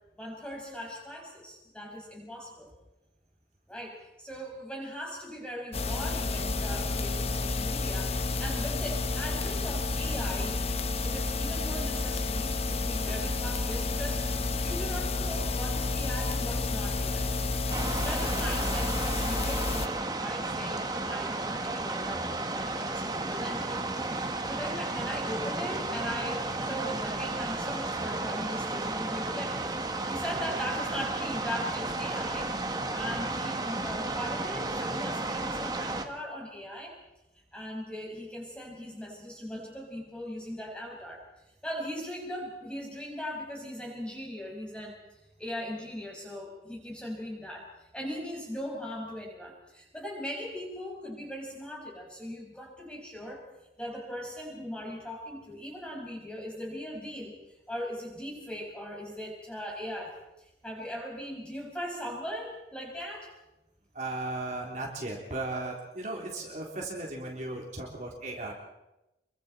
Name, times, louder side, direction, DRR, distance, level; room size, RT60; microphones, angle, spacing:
voice 1, 0.1-2.7 3.7-10.6 11.0-14.2 14.6-29.6 29.8-36.9 37.5-41.2 41.6-45.0 45.4-53.5 53.8-57.3 57.7-63.3, equal, 5° left, -2 dB, 6.1 m, -39 dB
sound 1, 5.7-19.9, left 3 dB, 35° left, 1.0 m, -30 dB
sound 2, 17.7-36.0, right 2 dB, 20° right, 1.5 m, -33 dB
voice 2, 64.0-68.5, right 2 dB, 40° right, -2 dB, 3.6 m, -36 dB
27.0 x 23.5 x 4.5 m, 0.93 s
head